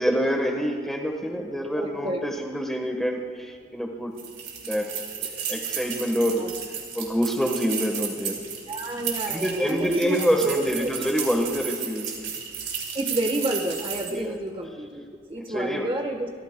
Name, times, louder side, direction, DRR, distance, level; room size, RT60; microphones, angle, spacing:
voice 1, 0.0-4.2 4.6-4.9 5.5-6.5 6.9-8.4 9.3-12.3 14.1-14.3 15.4-15.9, equal, ahead, 2 dB, 1.3 m, -26 dB
voice 2, 1.8-2.2 6.4-6.5 8.7-10.9 12.9-16.3, right 1 dB, 30° right, 3 dB, 1.2 m, -30 dB
sound 1, 4.2-14.3, right 7 dB, 85° right, 3.5 m, -33 dB
28.5 x 14.5 x 2.2 m, 2.1 s
head